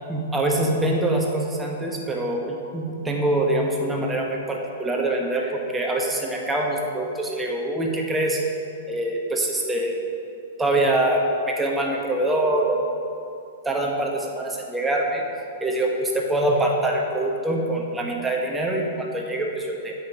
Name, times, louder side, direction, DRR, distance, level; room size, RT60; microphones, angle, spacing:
voice 1, 0.1-8.4 8.9-10.0 10.6-12.9 13.6-15.2 15.6-19.9, right 1 dB, 10° right, 0 dB, 1.1 m, -24 dB
7.9 x 5.8 x 4.9 m, 2.6 s
figure-of-eight pair, 100°, 0 cm